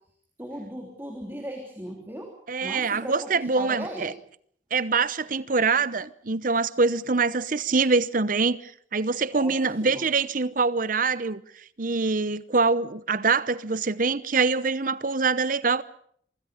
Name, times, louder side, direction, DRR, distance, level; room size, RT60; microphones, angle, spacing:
voice 1, 0.4-2.3 2.6-4.1 9.4-10.0, right 1 dB, 10° right, 3.2 m, -37 dB
voice 2, 2.5-4.1 4.7-15.8, right 4 dB, 45° right, 0.8 m, -24 dB
26.5 x 24.5 x 5.2 m
head